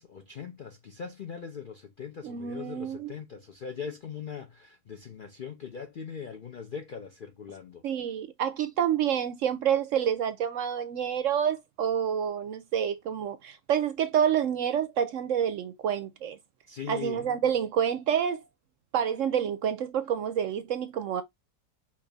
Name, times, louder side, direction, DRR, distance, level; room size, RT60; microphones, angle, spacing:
voice 1, 0.0-7.8 16.7-17.3, left 7 dB, 65° left, 0.5 m, -40 dB
voice 2, 2.2-3.1 7.8-16.4 16.9-18.4 18.9-21.2, right 9 dB, 65° right, 0.8 m, -28 dB
5.3 x 2.5 x 3.9 m
omnidirectional pair, 1.7 m